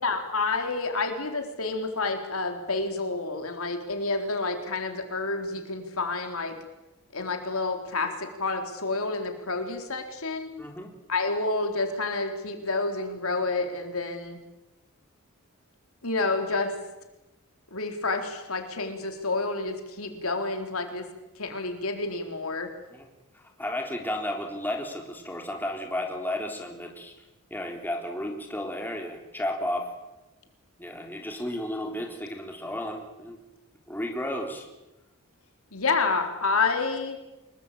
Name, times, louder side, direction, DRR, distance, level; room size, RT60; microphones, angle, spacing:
voice 1, 0.0-6.6 7.1-10.5 11.1-14.4 16.0-16.7 17.7-21.1 21.4-22.7 35.7-37.2, left 3 dB, 75° left, 5 dB, 4.0 m, -29 dB
voice 2, 10.6-10.9 22.9-23.1 23.3-27.1 27.5-29.9 30.8-33.4 33.9-34.7, left 1 dB, 10° left, 2 dB, 3.8 m, -33 dB
26.0 x 22.0 x 8.6 m, 1.0 s
head